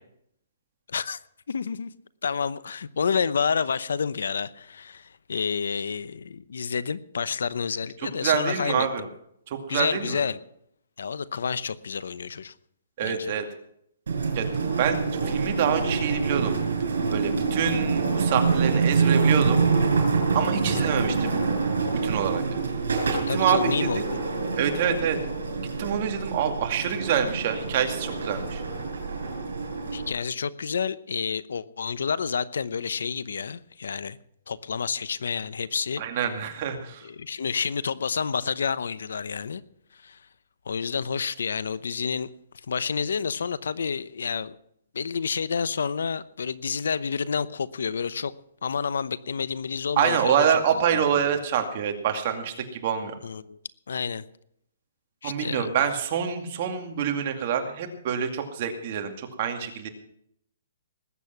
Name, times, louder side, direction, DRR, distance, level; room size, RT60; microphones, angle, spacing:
voice 1, 0.9-1.2 1.5-1.9 2.2-8.9 9.7-10.4 11.0-12.5 13.0-13.3 20.6-20.9 23.3-24.2 29.9-34.2 34.5-36.0 37.0-39.6 39.9-40.2 40.7-42.3 42.7-44.6 44.9-48.3 48.6-50.6 50.9-51.0 53.2-53.6 53.9-54.2 55.2-55.8, left 6 dB, 80° left, 17 dB, 0.8 m, -29 dB
voice 2, 8.2-9.1 9.7-10.2 13.0-13.4 14.3-14.5 14.8-16.6 17.1-19.6 20.3-21.3 22.0-22.4 23.3-23.9 24.6-25.2 25.8-28.6 36.0-37.1 50.0-53.1 55.2-59.9, right 8 dB, 40° right, 4 dB, 2.3 m, -26 dB
sound 1, 14.1-30.1, right 4 dB, 85° right, 5.3 m, -26 dB
19.5 x 8.5 x 5.9 m, 0.71 s
hypercardioid pair, 160°, 0 cm